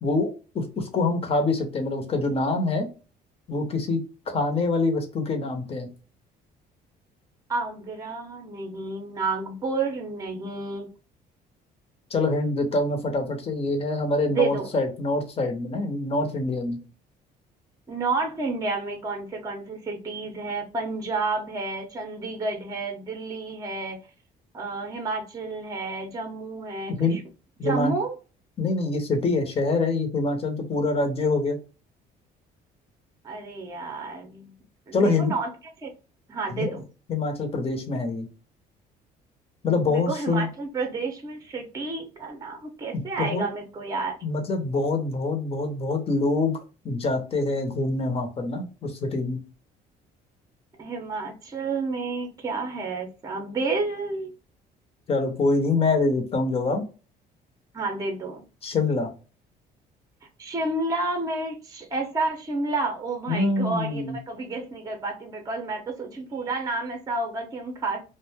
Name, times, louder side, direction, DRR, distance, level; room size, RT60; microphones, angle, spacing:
voice 1, 0.0-2.9 3.5-5.9 12.1-16.8 26.9-27.2 27.6-27.9 28.6-31.6 34.9-35.3 36.5-36.7 37.1-38.3 39.6-40.5 42.9-43.5 44.2-46.6 46.8-49.4 55.1-56.8 58.6-59.1 63.3-64.2, left 3 dB, 35° left, 4 dB, 0.8 m, -25 dB
voice 2, 7.5-10.9 14.3-14.7 17.9-24.0 24.5-27.2 27.6-28.1 33.2-34.5 34.9-35.5 35.8-35.9 36.3-36.8 39.9-44.2 50.8-54.3 57.7-58.4 60.4-68.0, right 3 dB, 20° right, 3 dB, 0.6 m, -30 dB
2.4 x 2.1 x 3.4 m, 0.34 s
cardioid pair, 110°, 17 cm